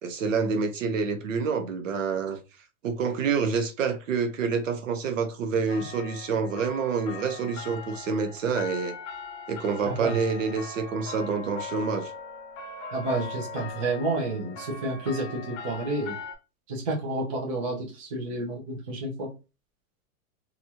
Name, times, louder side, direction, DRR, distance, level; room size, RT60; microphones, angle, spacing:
voice 1, 0.0-2.4 2.8-8.9 9.5-12.1, right 5 dB, 60° right, 0.7 m, -27 dB
sound 1, 5.7-16.4, left 4 dB, 55° left, 0.7 m, -40 dB
voice 2, 9.9-10.2 12.9-16.2 16.7-19.3, right 2 dB, 25° right, 0.5 m, -30 dB
2.8 x 2.4 x 2.7 m
supercardioid pair, 170°, 43 cm